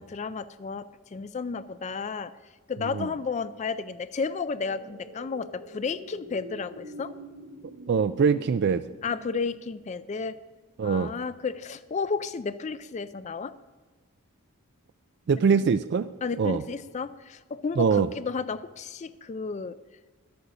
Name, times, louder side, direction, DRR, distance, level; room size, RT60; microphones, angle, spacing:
voice 1, 0.0-2.3 2.7-7.1 9.0-10.4 10.8-13.5 15.3-15.4 16.2-19.8, left 5 dB, 30° left, 14 dB, 0.3 m, -32 dB
sound 1, 4.5-10.6 11.0-11.1, equal, 80° right, 3.6 m, -46 dB
voice 2, 7.9-8.8 10.8-11.1 15.3-16.1 16.4-16.6 17.8-18.1, right 6 dB, 50° right, 12 dB, 0.3 m, -23 dB
12.0 x 8.7 x 6.8 m, 1.4 s
head